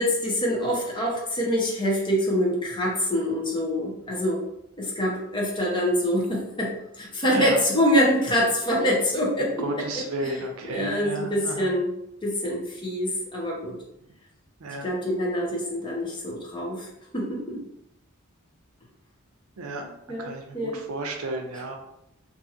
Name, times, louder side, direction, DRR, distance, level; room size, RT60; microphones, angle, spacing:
voice 1, 0.0-4.4 4.8-10.4 10.7-11.9 12.2-13.8 14.8-16.9 17.1-17.6 20.1-20.8, equal, 20° left, -3 dB, 0.7 m, -25 dB
voice 2, 9.6-11.7 14.6-14.9 19.6-19.9 20.2-21.8, right 2 dB, 90° right, 4 dB, 0.5 m, -33 dB
2.7 x 2.6 x 2.5 m, 0.81 s
head